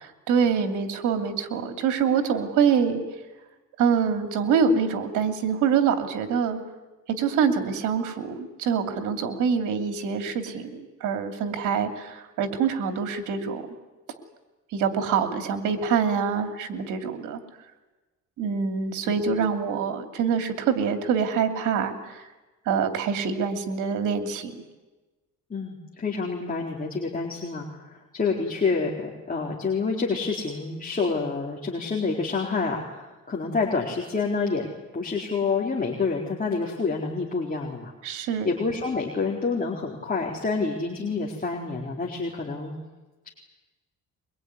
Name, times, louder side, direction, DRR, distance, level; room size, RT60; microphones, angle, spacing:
voice 1, 0.3-3.0 3.8-6.6 7.2-13.6 14.7-17.4 18.4-22.3 22.7-24.6 38.0-38.5, right 6 dB, 90° right, 6 dB, 2.8 m, -25 dB
voice 2, 25.5-34.7 34.9-37.9 38.4-42.7, left 4 dB, 30° left, -2 dB, 4.3 m, -28 dB
23.0 x 22.5 x 9.7 m, 1.1 s
cardioid pair, 90°, 30 cm